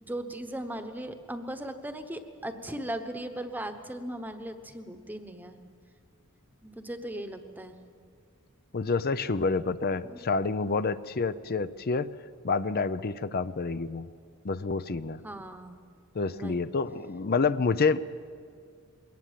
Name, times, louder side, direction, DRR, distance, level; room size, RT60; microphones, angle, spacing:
voice 1, 0.1-5.6 6.6-7.8 10.0-10.2 15.2-15.8 16.3-16.7, right 1 dB, 10° right, 8 dB, 1.1 m, -38 dB
voice 2, 8.7-12.1 12.4-14.1 14.4-15.2 16.1-18.0, left 4 dB, 45° left, 14 dB, 0.6 m, -28 dB
22.0 x 18.0 x 7.5 m, 2.2 s
head